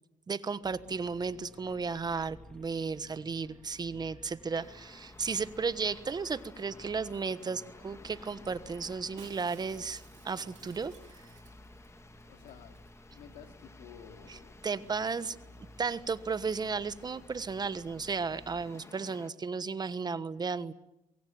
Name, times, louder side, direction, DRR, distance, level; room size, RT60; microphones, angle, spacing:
voice 1, 0.3-10.9 14.6-15.3 15.8-20.7, right 5 dB, 30° right, 14 dB, 1.3 m, -34 dB
sound 1, 0.6-18.7, left 1 dB, 5° left, 3.6 m, -55 dB
sound 2, 4.5-19.3, left 3 dB, 20° left, 2.0 m, -56 dB
Shatter, 9.2-11.9 12.2-12.3 12.5-12.9 13.2-13.3, right 9 dB, 60° right, 2.7 m, -57 dB
voice 2, 12.3-12.8 13.1-15.8, left 9 dB, 85° left, 6 dB, 2.7 m, -54 dB
23.5 x 23.5 x 9.4 m, 0.90 s
cardioid pair, 95°, 13 cm